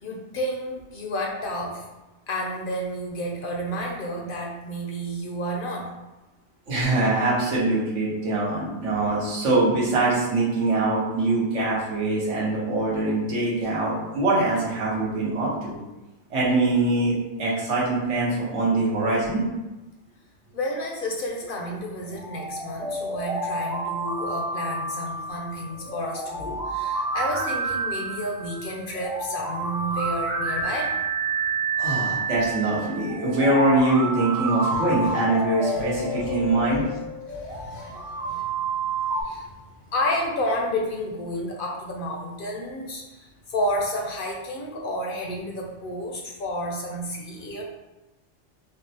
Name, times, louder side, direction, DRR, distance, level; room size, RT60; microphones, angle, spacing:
voice 1, 0.0-1.9 2.3-5.9 20.5-31.0 34.7-35.1 35.7-35.9 36.2-36.5 37.3-38.6 39.1-39.5 39.9-47.6, equal, 60° left, -1 dB, 0.7 m, -31 dB
voice 2, 6.7-15.8 16.3-19.4 31.8-36.8, right 2 dB, 85° right, -6 dB, 1.4 m, -23 dB
sound 1, 22.1-39.2, right 3 dB, 65° right, 1.7 m, -29 dB
5.0 x 2.1 x 2.7 m, 1.0 s
omnidirectional pair, 1.2 m